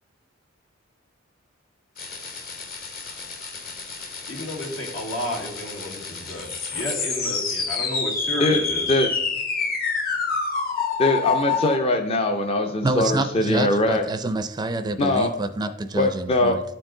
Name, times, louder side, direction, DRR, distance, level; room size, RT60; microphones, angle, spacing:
sound 1, 2.0-11.8, left 5 dB, 50° left, 1.1 m, -28 dB
voice 1, 4.3-8.9, left 1 dB, 80° left, 2.3 m, -32 dB
voice 2, 11.0-14.0 15.0-15.3 16.0-16.6, left 2 dB, 30° left, 0.5 m, -21 dB
voice 3, 12.8-16.6, right 2 dB, 20° right, 0.4 m, -27 dB
11.5 x 4.6 x 3.8 m
head